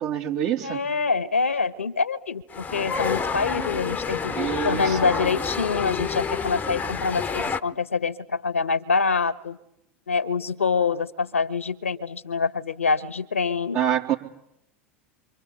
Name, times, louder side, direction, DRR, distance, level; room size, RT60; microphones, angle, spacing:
voice 1, 0.0-0.8 4.3-5.2 13.7-14.2, right 10 dB, 45° right, 0 dB, 3.8 m, -26 dB
voice 2, 0.6-4.4 4.6-9.6 10.1-13.8, left 5 dB, 80° left, 14 dB, 1.3 m, -25 dB
sound 1, 2.5-7.6, left 5 dB, 20° left, 1.1 m, -28 dB
28.0 x 24.5 x 8.6 m, 0.79 s
figure-of-eight pair, 80°, 7 cm